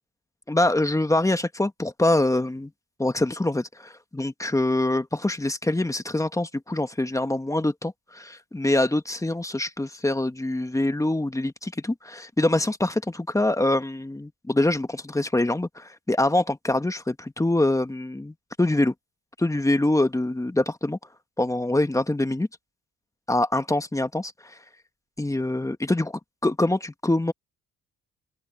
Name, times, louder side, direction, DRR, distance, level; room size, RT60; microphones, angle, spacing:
voice 1, 0.5-2.7 3.0-18.9 19.4-21.0 21.4-22.5 23.3-24.3 25.2-27.3, left 1 dB, 10° left, 1.4 m, -24 dB
open air
cardioid pair, 90°, 30 cm